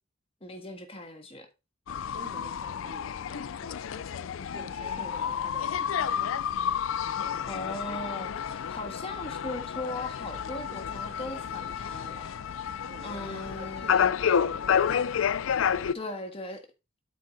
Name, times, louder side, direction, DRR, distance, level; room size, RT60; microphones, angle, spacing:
voice 1, 0.4-1.5 4.8-5.4 7.5-12.4 13.0-14.2 15.9-16.6, left 2 dB, 30° left, 1.5 m, -39 dB
sound 1, 1.9-15.9, left 8 dB, 70° left, 0.4 m, -30 dB
voice 2, 2.1-6.4 12.8-14.9 15.7-16.0, right 2 dB, 35° right, 1.9 m, -49 dB
12.0 x 4.4 x 3.9 m
head